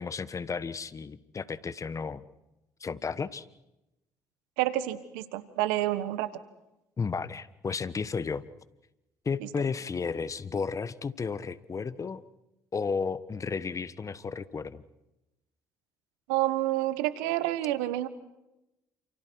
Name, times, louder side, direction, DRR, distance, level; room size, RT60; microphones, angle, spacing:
voice 1, 0.0-2.2 2.8-3.4 7.0-8.4 9.2-12.2 12.7-14.8, left 5 dB, 35° left, 16 dB, 1.3 m, -33 dB
voice 2, 4.6-6.3 9.4-9.5 16.3-18.1, right 15 dB, 85° right, 13 dB, 1.5 m, -28 dB
29.0 x 28.0 x 4.7 m, 0.93 s
hypercardioid pair, 60°, 9 cm